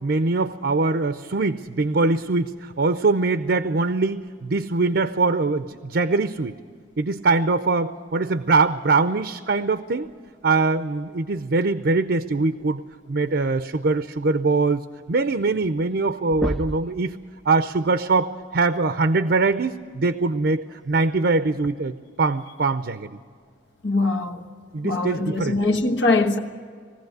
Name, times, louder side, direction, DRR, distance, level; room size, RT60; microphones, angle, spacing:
voice 1, 0.0-6.6 7.0-10.1 10.4-12.8 13.1-14.8 15.1-17.2 17.5-23.2 24.7-25.6, right 3 dB, 65° right, 0.6 m, -22 dB
Foley - Fall, 16.3-17.0 18.7-18.8 20.6-20.8 21.6-21.7, equal, ahead, 0.4 m, -29 dB
voice 2, 23.8-24.4 24.8-26.4, left 2 dB, 80° left, 1.4 m, -22 dB
21.0 x 15.5 x 8.0 m
head